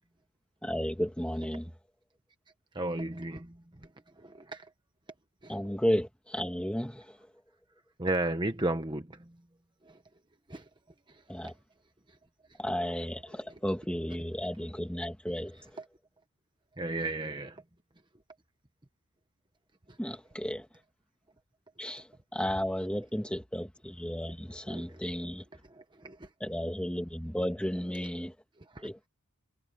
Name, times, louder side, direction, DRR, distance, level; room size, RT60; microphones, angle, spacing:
voice 1, 0.6-1.7 5.5-7.2 11.3-11.5 12.6-15.7 20.0-20.7 21.8-25.4 26.4-28.3 28.8-29.1, equal, 5° left, 1.8 m, -33 dB
voice 2, 2.7-3.5 4.3-4.6 5.4-5.5 8.0-9.1 10.5-10.6 16.8-17.6 24.7-24.8 26.0-26.2, right 2 dB, 20° right, 1.1 m, -32 dB
head